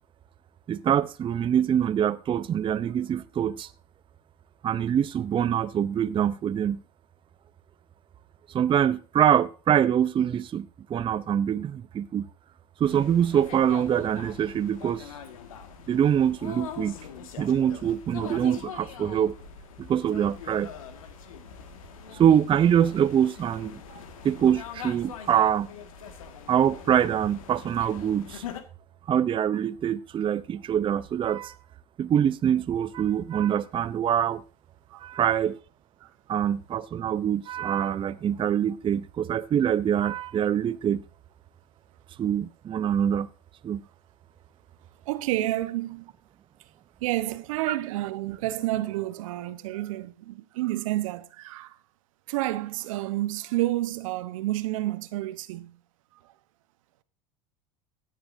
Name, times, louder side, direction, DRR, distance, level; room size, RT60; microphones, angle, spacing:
voice 1, 0.7-3.7 4.6-6.8 8.5-12.3 12.8-15.1 15.9-17.0 17.4-19.3 19.8-20.7 22.1-25.7 26.5-28.4 29.1-31.5 32.0-34.4 35.0-35.6 36.3-41.0 42.2-43.3 43.6-43.8, right 9 dB, 30° right, 0.7 m, -24 dB
sound 1, 12.8-28.6, left 8 dB, 80° left, 1.9 m, -43 dB
voice 2, 45.1-46.1 47.0-51.8 52.3-55.8, right 16 dB, 70° right, 1.0 m, -30 dB
16.5 x 10.0 x 2.7 m
hypercardioid pair, 85°, 18 cm